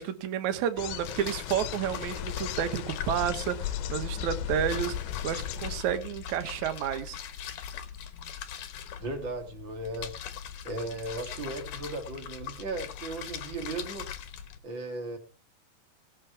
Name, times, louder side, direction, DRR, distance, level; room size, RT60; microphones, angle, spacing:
voice 1, 0.0-7.2, right 9 dB, 65° right, 9 dB, 2.0 m, -31 dB
sound 1, 0.8-5.8, left 11 dB, 90° left, 3.0 m, -36 dB
sound 2, 1.0-14.6, left 9 dB, 65° left, 2.1 m, -41 dB
voice 2, 9.0-10.1 10.6-14.1 14.6-15.2, right 2 dB, 50° right, 5 dB, 1.5 m, -36 dB
19.5 x 7.4 x 4.6 m, 0.38 s
omnidirectional pair, 4.8 m